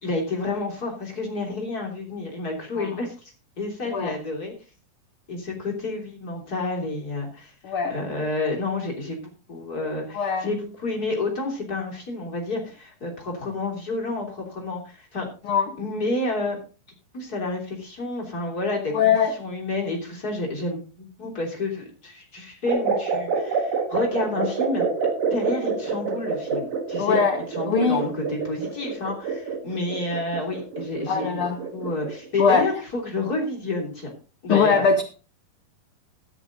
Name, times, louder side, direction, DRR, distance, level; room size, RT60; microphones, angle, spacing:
voice 1, 0.0-4.5 5.3-9.2 9.5-15.3 15.8-16.6 17.1-19.1 19.4-24.9 25.3-27.2 27.5-31.3 31.7-34.1 34.4-34.9, left 2 dB, 25° left, -1 dB, 3.3 m, -29 dB
voice 2, 7.6-8.0 10.1-10.5 15.4-15.8 18.9-19.3 27.0-28.0 31.1-31.6 32.4-32.7 34.5-35.0, left 5 dB, 75° left, 7 dB, 1.2 m, -22 dB
sound 1, 22.7-32.3, right 5 dB, 75° right, 3.4 m, -27 dB
13.5 x 10.5 x 3.9 m, 0.35 s
omnidirectional pair, 4.1 m